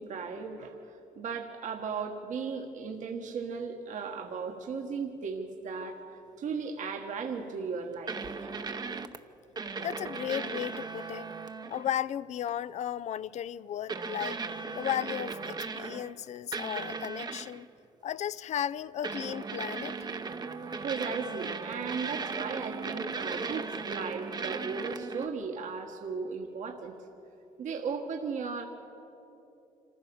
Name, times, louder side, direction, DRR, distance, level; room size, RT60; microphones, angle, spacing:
voice 1, 0.0-8.5 20.7-26.9 27.6-28.7, right 5 dB, 65° right, 1.5 m, -36 dB
sound 1, 8.1-9.2 9.6-11.9 12.4-12.6 13.9-16.2 16.5-17.6 19.0-25.3, right 4 dB, 30° right, 0.8 m, -37 dB
voice 2, 9.8-11.3 11.7-14.4 14.7-17.7 18.0-20.0, left 10 dB, 55° left, 0.4 m, -35 dB
26.5 x 15.0 x 7.0 m
cardioid pair, 110°, 14 cm